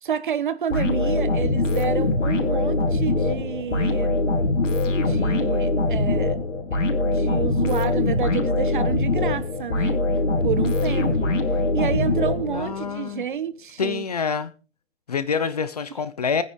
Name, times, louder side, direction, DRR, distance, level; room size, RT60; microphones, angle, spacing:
voice 1, 0.0-4.2 5.0-6.3 6.7-10.0 10.4-11.4 11.7-14.0, right 8 dB, 45° right, 1.2 m, -29 dB
sound 1, 0.7-12.9, left 2 dB, 85° left, 3.9 m, -23 dB
voice 2, 12.5-13.2 13.8-14.5 15.1-16.4, left 6 dB, 35° left, 0.7 m, -26 dB
21.5 x 9.8 x 3.7 m
hypercardioid pair, 175°, 37 cm